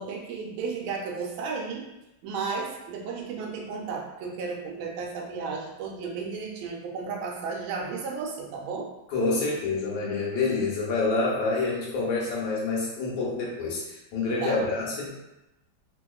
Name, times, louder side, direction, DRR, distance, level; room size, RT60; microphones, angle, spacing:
voice 1, 0.0-1.9 2.2-8.9 14.4-14.7, right 5 dB, 85° right, -1 dB, 1.4 m, -33 dB
voice 2, 9.1-15.1, left 3 dB, 70° left, -4 dB, 1.5 m, -27 dB
3.4 x 2.8 x 2.3 m, 0.93 s
omnidirectional pair, 2.2 m